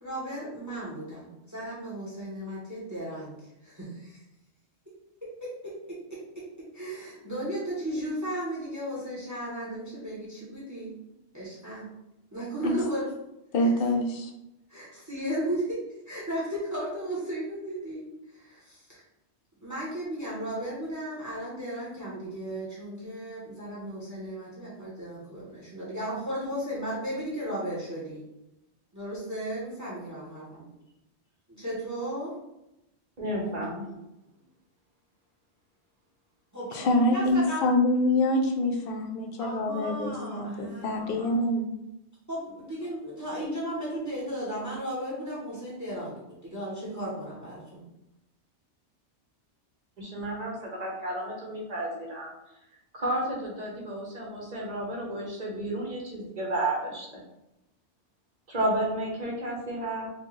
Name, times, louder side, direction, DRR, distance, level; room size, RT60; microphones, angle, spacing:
voice 1, 0.0-4.2 5.4-5.7 6.7-10.9 11.3-11.9 12.3-13.1 13.6-13.7 14.7-15.8 16.1-19.0 19.6-28.2 28.9-30.4 31.5-32.3 33.4-33.7 36.5-37.6 39.4-41.2 42.3-47.8, right 1 dB, 15° right, -6 dB, 1.0 m, -35 dB
voice 2, 13.5-14.3 36.7-41.7, left 1 dB, 60° left, 3 dB, 0.7 m, -25 dB
voice 3, 33.2-33.8 41.0-41.4 50.0-52.3 52.9-57.2 58.5-60.1, right 1 dB, 40° right, -2 dB, 1.0 m, -32 dB
4.3 x 2.3 x 3.1 m, 0.91 s
omnidirectional pair, 1.2 m